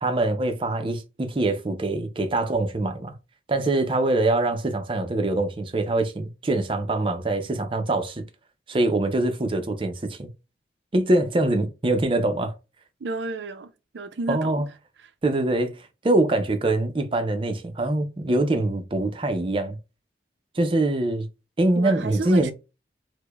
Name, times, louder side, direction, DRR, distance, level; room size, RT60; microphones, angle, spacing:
voice 1, 0.0-3.2 3.5-8.2 8.7-10.3 10.9-12.5 14.3-14.7 15.2-19.8 20.5-21.3 21.6-22.5, right 2 dB, 30° right, 0.5 m, -24 dB
voice 2, 13.0-14.6 21.8-22.5, right 2 dB, 85° right, 0.5 m, -31 dB
4.7 x 2.1 x 2.2 m
head